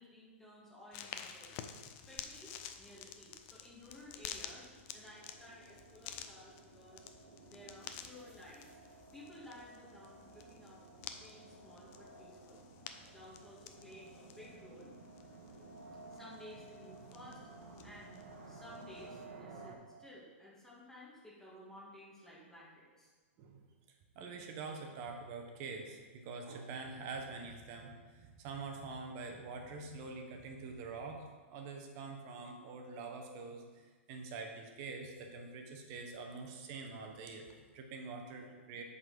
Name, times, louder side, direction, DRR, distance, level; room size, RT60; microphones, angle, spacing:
voice 1, 0.0-1.7 2.1-4.7 4.9-7.0 7.5-8.6 9.1-10.8 11.2-12.6 13.1-14.9 16.1-17.4 17.8-18.2 18.5-23.1, left 1 dB, 5° left, -7 dB, 2.2 m, -55 dB
sound 1, 0.9-19.3, left 8 dB, 40° left, 0.5 m, -51 dB
sound 2, 3.5-19.8, right 3 dB, 75° right, 1.3 m, -55 dB
voice 2, 24.1-38.8, right 4 dB, 40° right, 3 dB, 1.1 m, -45 dB
7.6 x 4.2 x 5.1 m, 1.4 s
hypercardioid pair, 130°, 7 cm